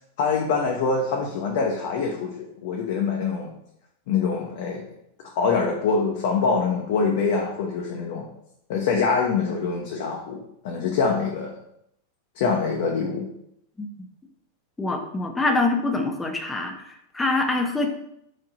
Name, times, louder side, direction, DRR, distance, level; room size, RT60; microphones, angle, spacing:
voice 1, 0.2-3.5 4.1-4.9 5.2-8.3 8.7-10.4 10.6-11.6 12.4-13.2, left 5 dB, 50° left, 0 dB, 0.6 m, -24 dB
voice 2, 14.8-17.9, left 2 dB, 10° left, 3 dB, 0.6 m, -25 dB
4.8 x 2.6 x 3.9 m, 0.77 s
figure-of-eight pair, 90°, 0 cm